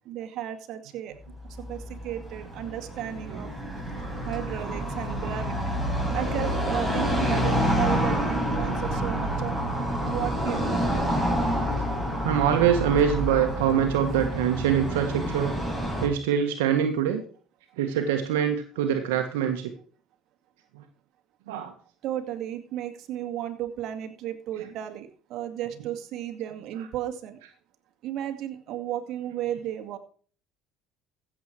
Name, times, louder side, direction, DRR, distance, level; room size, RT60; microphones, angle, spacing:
voice 1, 0.1-1.1 1.7-3.5 4.3-5.5 6.1-9.6 10.1-11.1 22.0-27.4 28.0-30.0, right 11 dB, 60° right, 5 dB, 2.2 m, -34 dB
Car passing by / Traffic noise roadway noise, 1.4-16.1, equal, 5° left, 7.3 m, -28 dB
voice 2, 12.2-15.6 16.0-17.2 17.8-19.7 20.7-20.8 21.5-21.7, right 8 dB, 90° right, 5 dB, 1.6 m, -24 dB
15.0 x 7.8 x 4.6 m, 0.42 s
supercardioid pair, 90°, 0 cm